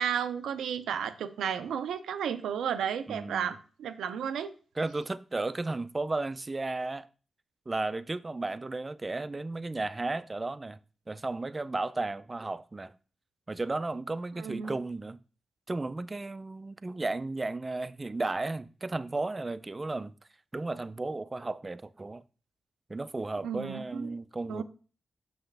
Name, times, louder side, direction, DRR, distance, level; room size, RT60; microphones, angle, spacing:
voice 1, 0.0-4.5 14.4-14.7 23.4-24.2 24.5-24.6, right 8 dB, 90° right, 0.5 m, -33 dB
voice 2, 3.1-3.5 4.8-7.1 7.7-10.8 11.1-12.9 13.5-15.2 15.7-20.1 20.5-22.2 22.9-24.6, right 2 dB, 35° right, 0.4 m, -34 dB
6.1 x 5.8 x 3.3 m
supercardioid pair, 45°, 0 cm